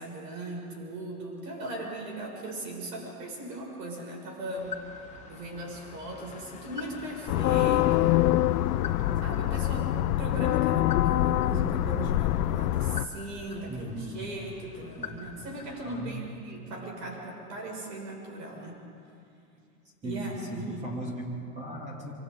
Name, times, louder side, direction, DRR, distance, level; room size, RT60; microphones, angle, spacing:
voice 1, 0.0-4.7 5.3-8.3 9.2-9.9 10.2-18.8 20.0-20.9, right 1 dB, 85° right, -1 dB, 6.6 m, -38 dB
sound 1, 4.6-16.0, left 6 dB, 15° left, 1.3 m, -45 dB
sound 2, 7.3-13.1, left 14 dB, 75° left, 0.7 m, -25 dB
voice 2, 13.7-14.2 15.0-15.3 15.8-16.3 20.0-22.1, right 1 dB, 15° right, -2 dB, 2.7 m, -37 dB
26.0 x 25.5 x 3.9 m, 2.5 s
supercardioid pair, 165°, 47 cm